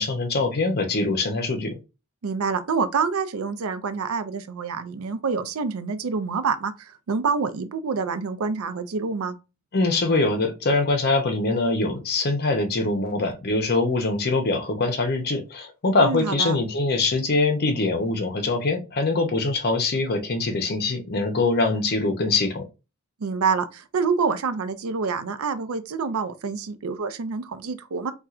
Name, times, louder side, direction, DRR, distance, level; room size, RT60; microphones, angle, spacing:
voice 1, 0.0-1.8 9.7-22.6, left 3 dB, 45° left, 0.7 m, -23 dB
voice 2, 2.2-9.4 16.0-16.6 23.2-28.1, right 5 dB, 80° right, 0.5 m, -27 dB
4.2 x 2.4 x 2.4 m
head